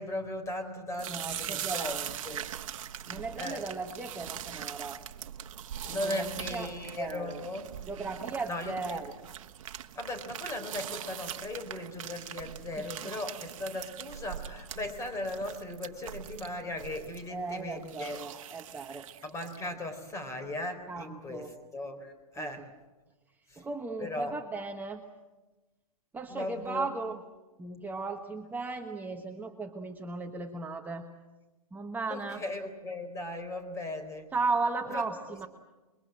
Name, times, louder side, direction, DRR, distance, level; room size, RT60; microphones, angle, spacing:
voice 1, 0.0-2.0 2.3-2.4 3.4-3.7 5.9-7.7 8.5-9.0 9.9-18.2 19.2-22.7 23.5-23.6 24.0-24.3 26.3-26.9 32.1-34.3 34.9-35.0, left 1 dB, 15° left, 7 dB, 4.1 m, -37 dB
sound 1, 0.9-19.7, right 10 dB, 60° right, 1.2 m, -42 dB
voice 2, 1.1-2.4 3.1-5.0 5.9-7.4 7.9-9.1 12.8-13.1 17.3-19.1 20.9-21.5 22.4-22.5 23.6-25.0 26.1-27.2 27.6-31.1 31.7-32.4 34.3-35.5, right 3 dB, 10° right, 3 dB, 1.3 m, -36 dB
28.0 x 22.5 x 7.7 m, 1.2 s
hypercardioid pair, 120°, 19 cm